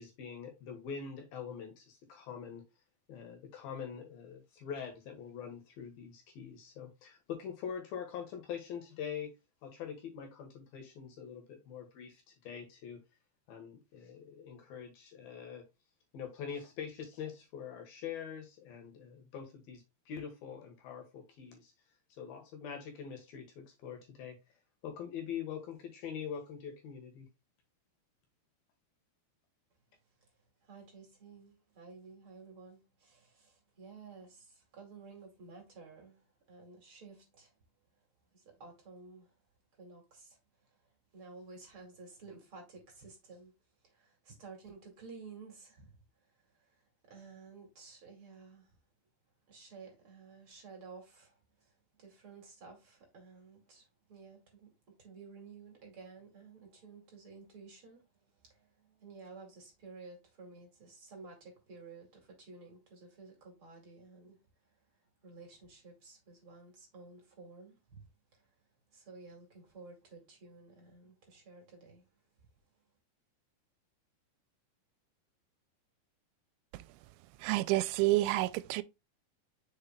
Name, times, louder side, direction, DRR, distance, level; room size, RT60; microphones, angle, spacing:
voice 1, 0.0-2.6 3.1-9.3 9.6-13.0 13.5-15.6 16.1-21.7 22.2-24.4 24.8-27.3, left 7 dB, 65° left, 2.7 m, -44 dB
voice 2, 30.6-37.5 38.3-39.3 39.7-40.8 41.1-43.5 43.8-45.9 46.4-48.7 49.5-64.4 65.2-68.0 68.3-68.5 68.9-72.1, right 4 dB, 35° right, 2.5 m, -53 dB
voice 3, 76.7-77.1 77.4-78.8, right 18 dB, 85° right, 2.9 m, -30 dB
6.9 x 6.6 x 2.2 m
omnidirectional pair, 5.2 m